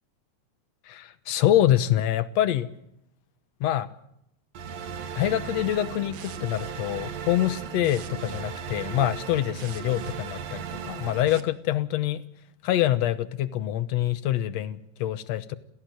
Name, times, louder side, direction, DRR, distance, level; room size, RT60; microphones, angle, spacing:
voice 1, 0.9-2.7 3.6-3.9 5.2-12.2 12.6-15.6, left 12 dB, 65° left, 13 dB, 2.0 m, -25 dB
sound 1, 4.5-11.4, right 7 dB, 60° right, 2.3 m, -36 dB
28.5 x 17.0 x 7.7 m, 0.78 s
omnidirectional pair, 3.5 m